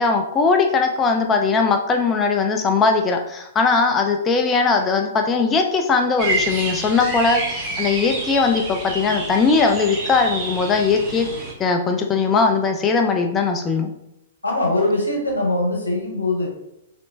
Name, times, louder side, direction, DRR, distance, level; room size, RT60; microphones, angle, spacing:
voice 1, 0.0-11.3 11.6-13.9, left 4 dB, 20° left, 4 dB, 0.3 m, -19 dB
sound 1, 6.2-11.5, right 2 dB, 25° right, 1.0 m, -28 dB
voice 2, 14.4-16.5, left 2 dB, 90° left, -1 dB, 1.0 m, -22 dB
3.1 x 2.9 x 2.6 m, 0.85 s
figure-of-eight pair, 110°, 0 cm